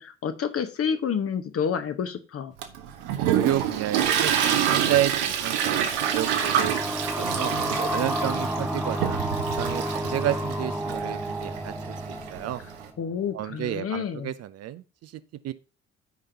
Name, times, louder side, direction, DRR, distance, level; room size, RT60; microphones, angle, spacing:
voice 1, 0.0-2.5 13.0-14.3, left 7 dB, 40° left, 9 dB, 1.2 m, -29 dB
Toilet flush, 2.6-12.8, right 9 dB, 70° right, 1.2 m, -27 dB
voice 2, 3.3-4.4 4.7-7.5 7.9-12.6 13.3-15.5, right 13 dB, 45° right, 13 dB, 0.6 m, -31 dB
sound 1, 5.7-13.1, right 1 dB, 5° right, 0.9 m, -31 dB
13.5 x 5.1 x 2.8 m, 0.33 s
figure-of-eight pair, 50°, 35 cm